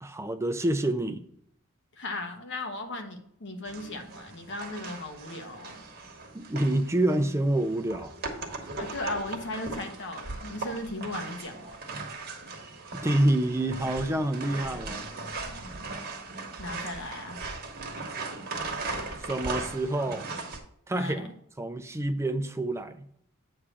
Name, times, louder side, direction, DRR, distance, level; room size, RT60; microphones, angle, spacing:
voice 1, 0.0-1.3 6.3-8.1 12.9-15.1 19.2-20.3 20.9-21.3 21.6-23.1, right 1 dB, 15° right, 9 dB, 0.5 m, -27 dB
voice 2, 2.0-5.8 8.8-11.8 16.6-17.4 20.9-21.3, left 2 dB, 60° left, 5 dB, 1.1 m, -37 dB
sound 1, 3.7-20.6, right 3 dB, 50° right, 1.1 m, -38 dB
8.4 x 3.2 x 6.1 m, 0.68 s
head